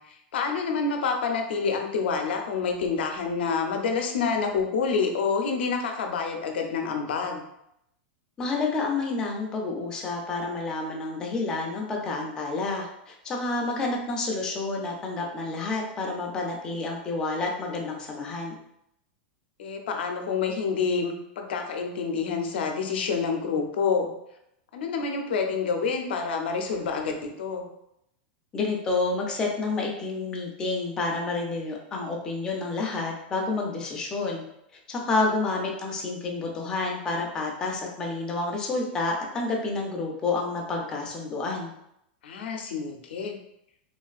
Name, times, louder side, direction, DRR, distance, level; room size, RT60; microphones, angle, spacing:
voice 1, 0.1-7.4 19.6-24.1 24.7-27.7 42.2-43.4, left 5 dB, 85° left, 3 dB, 0.5 m, -28 dB
voice 2, 8.4-18.6 28.5-34.4 34.9-41.7, left 3 dB, 15° left, -1 dB, 0.4 m, -29 dB
3.2 x 2.4 x 2.3 m, 0.79 s
supercardioid pair, 175°, 6 cm